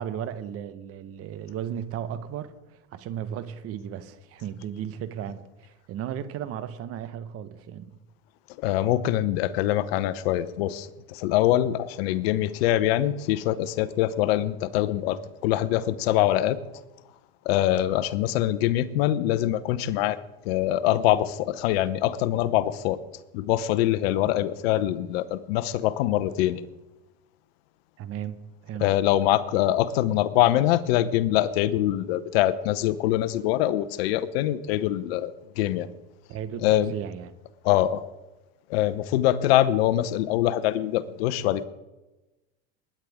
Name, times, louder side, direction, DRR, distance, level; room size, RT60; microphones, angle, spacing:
voice 1, 0.0-7.9 28.0-28.4 28.6-28.9 36.3-37.3, right 9 dB, 45° right, 1.2 m, -35 dB
voice 2, 8.6-16.6 17.4-20.2 20.4-23.0 23.3-26.6 28.8-35.9 36.6-36.9 37.6-38.0 38.7-41.6, left 13 dB, 70° left, 0.9 m, -24 dB
21.0 x 10.5 x 3.6 m
hypercardioid pair, 100°, 32 cm